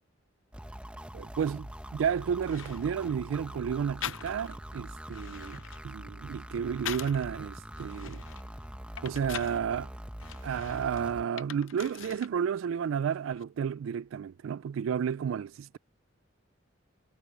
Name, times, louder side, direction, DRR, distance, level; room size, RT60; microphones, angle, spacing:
sound 1, 0.5-11.3, equal, 5° right, 1.3 m, -43 dB
voice 1, 1.1-8.2 9.0-9.9 10.4-15.8, right 7 dB, 90° right, 0.3 m, -32 dB
sound 2, 2.0-2.1 2.4-3.2 4.0-4.6 5.0-7.3 7.8-9.6 10.2-12.4 12.7-13.4, left 10 dB, 85° left, 0.6 m, -43 dB
head